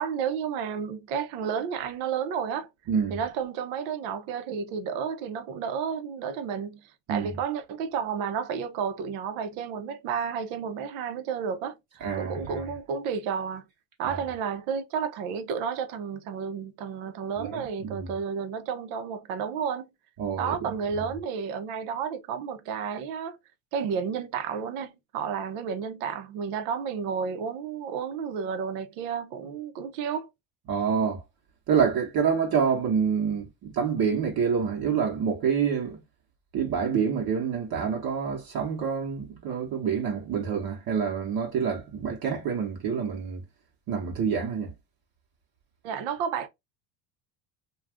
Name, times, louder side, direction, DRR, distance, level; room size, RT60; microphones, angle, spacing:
voice 1, 0.0-2.7 3.1-11.8 12.2-13.7 14.0-19.9 20.4-23.4 23.7-30.3 45.8-46.5, right 7 dB, 85° right, 0.8 m, -31 dB
voice 2, 2.9-3.2 7.1-7.3 12.0-12.6 14.0-14.2 17.4-18.1 20.2-20.7 30.7-31.2 31.7-36.0 36.5-43.4 43.9-44.7, right 6 dB, 50° right, 1.0 m, -27 dB
2.4 x 2.3 x 3.4 m
cardioid pair, 115°, 47 cm